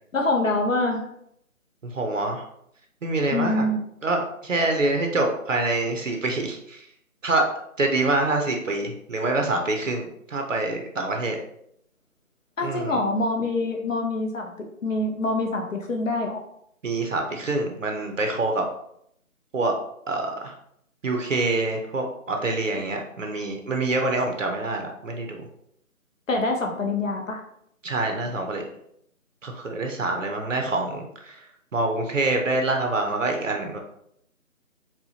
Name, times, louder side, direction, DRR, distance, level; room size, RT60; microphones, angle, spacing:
voice 1, 0.1-1.0 3.3-3.8 12.6-16.4 26.3-27.4, left 2 dB, 65° left, 2 dB, 0.6 m, -25 dB
voice 2, 1.8-2.4 3.0-3.6 4.0-6.8 7.2-7.5 7.8-11.4 12.6-13.0 16.8-18.6 19.5-19.7 20.1-20.5 21.0-25.5 27.8-28.6 29.4-31.4 31.7-33.8, right 2 dB, 60° right, 3 dB, 0.6 m, -26 dB
4.2 x 2.1 x 2.8 m, 0.72 s
figure-of-eight pair, 175°, 42 cm